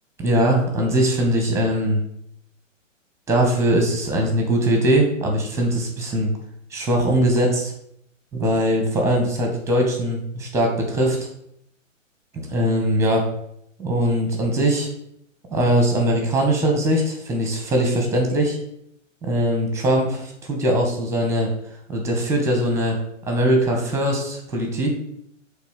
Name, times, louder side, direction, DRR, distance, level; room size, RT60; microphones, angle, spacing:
voice 1, 0.2-2.0 3.3-6.3 6.7-7.7 8.3-11.2 12.5-13.2 13.8-14.9 15.5-18.6 19.2-21.5 21.9-23.0 23.3-24.9, right 1 dB, 5° right, 1 dB, 1.9 m, -21 dB
8.1 x 3.9 x 6.6 m, 0.73 s
figure-of-eight pair, 130°, 39 cm